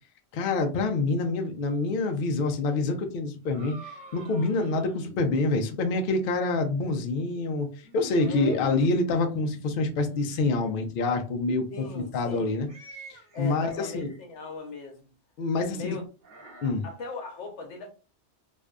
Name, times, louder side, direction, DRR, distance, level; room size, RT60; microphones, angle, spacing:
voice 1, 0.3-12.7 13.1-14.1 15.4-16.0 16.6-16.8, left 3 dB, 60° left, 0.6 m, -27 dB
sound 1, 3.5-5.3 7.8-9.0 9.8-10.7 12.6-14.2 16.2-16.7, left 2 dB, 45° right, 0.8 m, -43 dB
voice 2, 8.2-8.6 11.7-12.6 13.3-15.1 15.7-16.0 16.8-17.9, left 3 dB, 85° left, 1.0 m, -39 dB
2.6 x 2.3 x 2.2 m
omnidirectional pair, 1.2 m